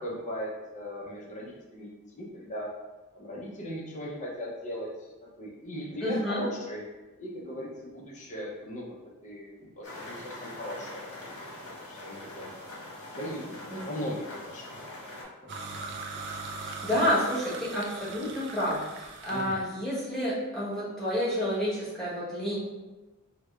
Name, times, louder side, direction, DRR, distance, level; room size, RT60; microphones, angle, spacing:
voice 1, 0.0-1.9 2.2-2.7 3.1-6.8 7.2-8.8 9.2-12.5 13.1-14.8 15.4-15.9 19.3-19.6, equal, 35° left, -3 dB, 0.7 m, -38 dB
voice 2, 6.0-6.4 13.7-13.9 16.8-22.6, equal, ahead, -10 dB, 1.1 m, -29 dB
sound 1, 9.8-15.2, left 1 dB, 70° left, 1.2 m, -43 dB
sound 2, 15.5-19.7, right 3 dB, 55° right, 0.4 m, -40 dB
4.6 x 2.2 x 2.4 m, 1.1 s
head